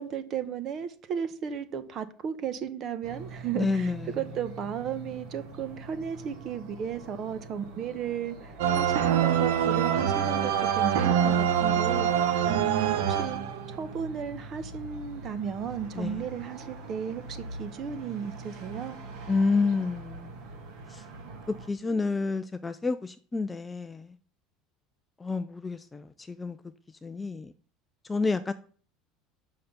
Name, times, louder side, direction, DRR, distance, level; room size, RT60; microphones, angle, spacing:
voice 1, 0.0-13.4 13.7-19.0, right 8 dB, 35° right, 0.9 m, -35 dB
sound 1, 3.0-21.7, right 3 dB, 60° right, 2.1 m, -44 dB
voice 2, 3.5-4.2 12.6-12.7 15.9-16.2 19.3-20.4 20.9-21.0 21.5-24.2 25.2-26.6 27.0-27.5 28.0-28.5, left 4 dB, 10° left, 0.4 m, -29 dB
sound 2, 8.6-13.8, right 9 dB, 90° right, 1.0 m, -25 dB
7.6 x 5.7 x 6.7 m
cardioid pair, 165°, 0 cm